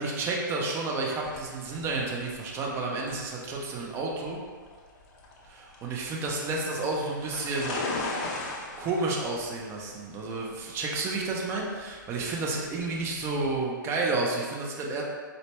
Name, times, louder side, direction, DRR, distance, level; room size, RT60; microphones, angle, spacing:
voice 1, 0.0-4.4 5.5-7.8 8.8-15.0, right 3 dB, 20° right, -1 dB, 0.6 m, -31 dB
sound 1, 1.2-13.6, left 2 dB, 35° left, 0.6 m, -39 dB
4.0 x 2.0 x 3.3 m, 1.5 s
figure-of-eight pair, 125°, 11 cm